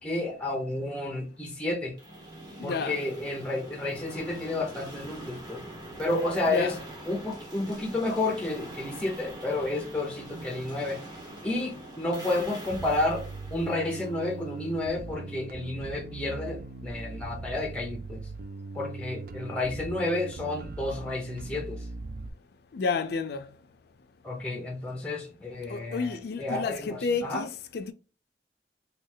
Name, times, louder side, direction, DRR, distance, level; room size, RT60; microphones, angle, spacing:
voice 1, 0.0-2.0 2.6-5.6 6.0-6.7 7.1-11.0 11.4-13.2 13.5-18.2 18.7-21.9 24.2-27.5, left 2 dB, 5° left, 0.6 m, -31 dB
sound 1, 2.0-14.8, right 1 dB, 25° right, 1.1 m, -44 dB
voice 2, 2.6-3.0 6.5-6.7 22.7-23.5 25.7-27.9, left 4 dB, 65° left, 0.4 m, -30 dB
Bass guitar, 12.7-22.3, right 3 dB, 55° right, 0.4 m, -40 dB
3.1 x 2.3 x 3.8 m
head